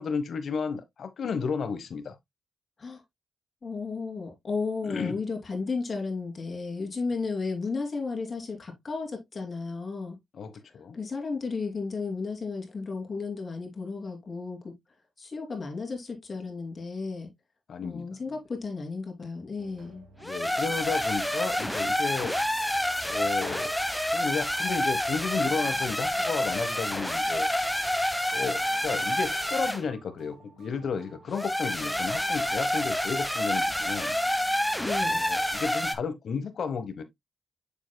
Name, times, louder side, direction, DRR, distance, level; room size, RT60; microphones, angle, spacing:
voice 1, 0.0-2.1 4.8-5.2 10.3-11.0 17.7-18.1 20.2-22.3 23.0-23.8 24.1-27.5 28.3-34.2 35.1-37.0, left 5 dB, 65° left, 1.1 m, -33 dB
voice 2, 3.6-10.2 10.9-14.7 15.2-17.3 17.8-20.0 34.8-35.2, left 4 dB, 45° left, 3.0 m, -33 dB
sound 1, 19.6-35.6, right 4 dB, 85° right, 2.3 m, -53 dB
sound 2, 20.2-29.8 31.3-35.9, left 1 dB, 5° left, 1.0 m, -28 dB
7.2 x 6.8 x 2.2 m
cardioid pair, 70°, 0 cm